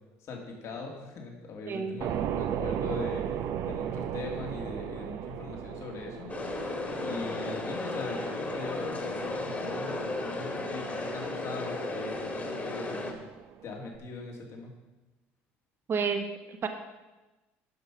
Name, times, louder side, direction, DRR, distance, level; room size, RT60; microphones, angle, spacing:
voice 1, 0.2-3.2 3.6-6.3 7.0-13.1 13.6-14.7, left 3 dB, 55° left, 1 dB, 2.4 m, -40 dB
voice 2, 1.7-2.0 15.9-16.7, right 5 dB, 40° right, 6 dB, 1.2 m, -31 dB
sound 1, 2.0-14.0, right 9 dB, 60° right, 0.7 m, -37 dB
sound 2, 6.3-13.1, left 2 dB, 30° left, 2.1 m, -34 dB
12.0 x 5.5 x 6.0 m, 1.1 s
supercardioid pair, 90°, 6 cm